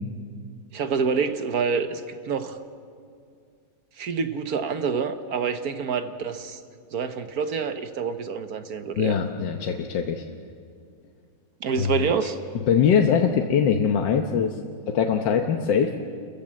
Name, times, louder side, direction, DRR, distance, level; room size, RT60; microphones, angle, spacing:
voice 1, 0.7-2.6 4.0-6.6 6.9-9.2 11.6-12.4, right 6 dB, 60° right, 9 dB, 1.4 m, -27 dB
voice 2, 8.9-10.2 11.8-12.0 12.7-14.5 14.9-16.0, left 7 dB, 85° left, 4 dB, 1.7 m, -22 dB
29.5 x 14.5 x 7.6 m, 2.3 s
omnidirectional pair, 1.9 m